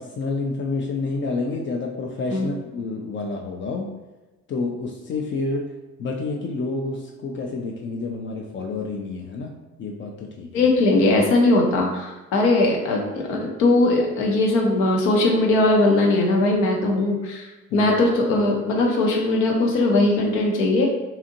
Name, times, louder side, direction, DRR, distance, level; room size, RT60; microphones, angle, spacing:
voice 1, 0.0-3.9 4.5-9.5 9.8-10.7 17.7-17.9, left 3 dB, 35° left, 1 dB, 0.4 m, -29 dB
voice 2, 10.5-20.9, left 2 dB, 70° left, 0 dB, 0.7 m, -20 dB
2.7 x 2.4 x 2.6 m, 1.1 s
figure-of-eight pair, 45°, 36 cm